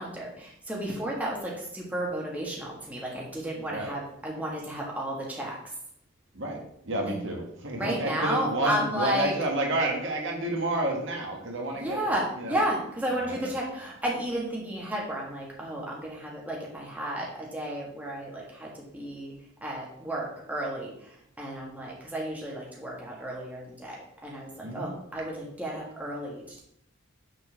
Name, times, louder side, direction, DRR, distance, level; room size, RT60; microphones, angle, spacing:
voice 1, 0.0-5.6 7.1-7.3 7.8-9.3 11.7-19.3 19.6-26.6, right 1 dB, 5° right, -3 dB, 1.7 m, -33 dB
voice 2, 6.9-12.6 13.2-13.5 24.6-24.9, right 1 dB, 60° right, 0 dB, 1.7 m, -30 dB
6.6 x 4.4 x 6.3 m, 0.73 s
head